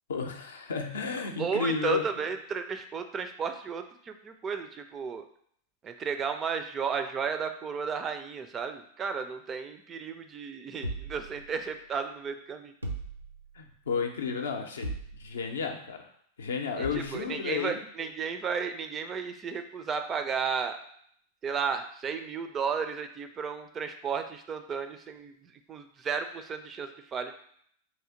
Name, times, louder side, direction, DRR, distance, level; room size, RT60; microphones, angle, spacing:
voice 1, 0.1-2.1 13.5-16.1 16.4-17.8, left 5 dB, 65° left, 4 dB, 0.5 m, -32 dB
voice 2, 1.4-5.3 5.8-12.7 16.8-20.8 21.4-27.3, right 6 dB, 25° right, 7 dB, 0.3 m, -33 dB
sound 1, 10.8-11.9 12.8-13.7 14.8-15.5 16.8-17.3, right 2 dB, 85° right, 0.5 m, -39 dB
3.2 x 2.7 x 3.7 m, 0.65 s
figure-of-eight pair, 90°, 0 cm